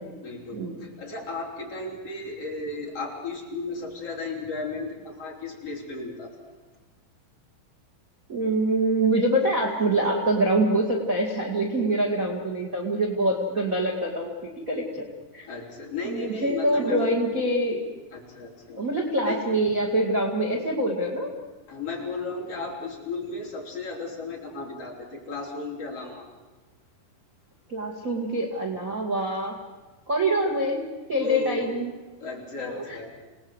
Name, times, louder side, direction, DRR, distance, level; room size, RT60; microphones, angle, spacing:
voice 1, 0.2-6.3 15.4-17.0 18.1-18.8 19.2-19.4 21.7-26.3 31.2-31.7 32.2-33.2, left 3 dB, 35° left, -2 dB, 4.7 m, -35 dB
voice 2, 8.3-15.0 15.3-15.5 16.0-17.8 18.8-21.3 27.7-29.5 30.1-31.9 32.6-33.0, right 1 dB, 50° right, 2 dB, 0.9 m, -25 dB
28.0 x 18.5 x 8.0 m, 1.2 s
omnidirectional pair, 5.3 m